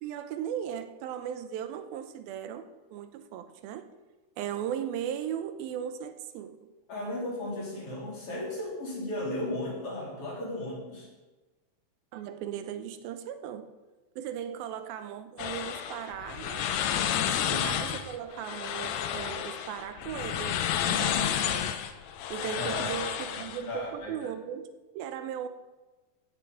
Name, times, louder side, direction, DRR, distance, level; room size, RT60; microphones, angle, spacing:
voice 1, 0.0-2.7 2.9-3.9 4.4-6.6 12.1-13.7 14.2-16.7 17.5-21.7 22.3-25.5, right 9 dB, 80° right, 10 dB, 2.6 m, -37 dB
voice 2, 6.9-11.1 17.3-17.7 22.6-23.4 23.7-24.3, left 1 dB, 40° left, -3 dB, 3.9 m, -36 dB
sound 1, 15.4-23.7, left 9 dB, 85° left, 1.5 m, -31 dB
16.0 x 8.1 x 5.0 m, 1.2 s
omnidirectional pair, 4.2 m